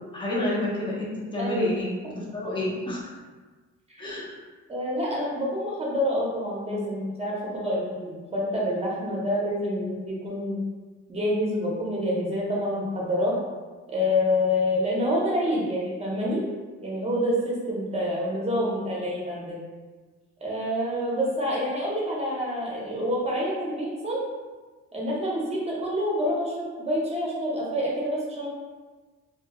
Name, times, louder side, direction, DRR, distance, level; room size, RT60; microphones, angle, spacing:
voice 1, 0.1-3.0 4.0-4.3, left 1 dB, 15° left, -5 dB, 0.7 m, -29 dB
voice 2, 1.4-1.7 3.9-4.1 4.7-10.6 11.1-13.3 13.9-16.4 16.8-19.6 20.4-24.2 24.9-28.5, left 1 dB, 20° right, -4 dB, 0.8 m, -27 dB
2.2 x 2.2 x 2.9 m, 1.3 s
cardioid pair, 90°, 30 cm